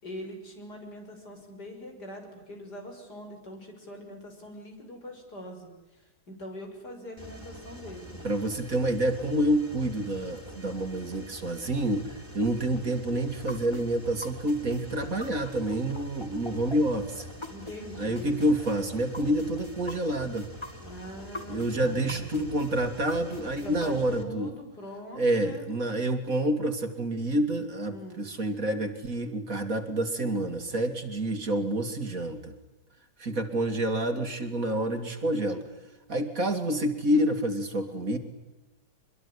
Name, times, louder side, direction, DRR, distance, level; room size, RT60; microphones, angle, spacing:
voice 1, 0.0-5.7 6.3-8.1 17.5-18.4 20.8-22.3 23.6-25.7 27.9-28.2, left 1 dB, 65° left, 3 dB, 7.0 m, -43 dB
Mechanisms, 7.2-24.2, equal, 15° right, 3.8 m, -46 dB
voice 2, 8.2-17.3 18.0-20.5 21.5-24.5 25.1-32.5 33.2-35.6 36.1-38.2, right 1 dB, 50° right, 7 dB, 3.0 m, -28 dB
sound 1, 13.5-17.8 18.1-21.7 22.1-23.9, left 2 dB, 15° left, 1.8 m, -42 dB
25.5 x 22.5 x 9.9 m, 1.0 s
omnidirectional pair, 1.9 m